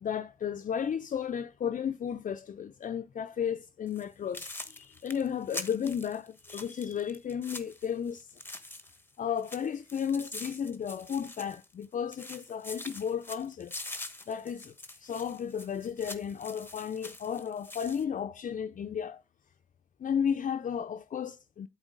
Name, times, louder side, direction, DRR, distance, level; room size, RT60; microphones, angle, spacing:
voice 1, 0.0-8.3 9.2-13.7 14.3-14.7 15.0-19.2 20.0-21.7, left 8 dB, 60° left, 0.4 m, -33 dB
sound 1, 3.9-4.0 4.3-9.1 9.4-11.9 12.1-18.0, left 2 dB, 15° left, 1.0 m, -44 dB
8.0 x 3.9 x 3.7 m
cardioid pair, 40°, 15 cm